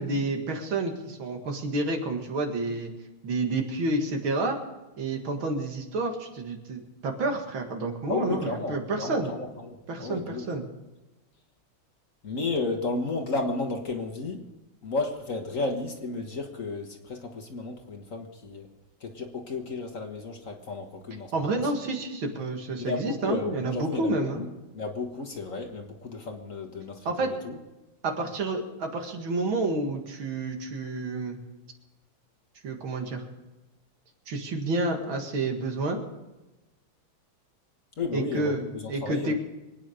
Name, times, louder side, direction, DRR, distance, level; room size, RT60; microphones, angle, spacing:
voice 1, 0.0-2.9 3.2-4.6 5.0-9.3 9.9-10.6 21.3-24.4 27.1-27.3 28.0-31.4 32.6-33.3 34.3-36.0 38.1-38.6 38.9-39.3, right 2 dB, 80° right, 3 dB, 2.7 m, -29 dB
voice 2, 8.1-10.5 12.2-14.4 14.8-18.7 19.0-21.5 22.8-24.5 24.7-27.6 38.0-39.3, left 3 dB, 45° left, 4 dB, 1.6 m, -33 dB
24.5 x 9.4 x 5.1 m, 1.1 s
omnidirectional pair, 2.2 m